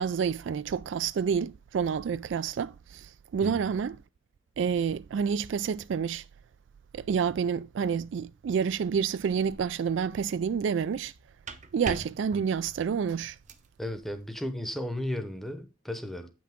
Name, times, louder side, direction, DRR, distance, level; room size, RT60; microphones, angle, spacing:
voice 1, 0.0-4.0 4.6-6.2 6.9-11.1 11.7-13.4, right 6 dB, 60° right, 0.3 m, -29 dB
sound 1, 9.4-9.8 11.1-13.7, right 3 dB, 40° right, 0.7 m, -42 dB
voice 2, 13.8-16.3, left 1 dB, ahead, 0.8 m, -34 dB
8.4 x 6.0 x 3.6 m
head